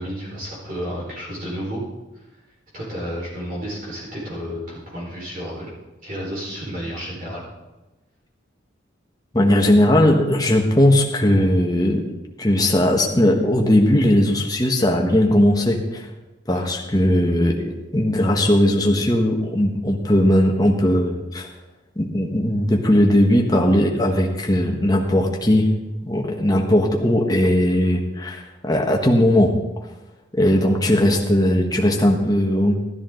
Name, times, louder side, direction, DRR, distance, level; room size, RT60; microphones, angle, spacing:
voice 1, 0.0-1.8 2.7-5.7 6.0-7.4 16.5-16.6, equal, 45° right, -5 dB, 4.6 m, -31 dB
voice 2, 9.3-12.0 12.4-16.0 16.5-21.5 22.0-25.7 26.0-29.5 30.3-32.8, left 1 dB, 20° left, 1 dB, 1.3 m, -18 dB
13.0 x 12.5 x 3.9 m, 1.1 s
head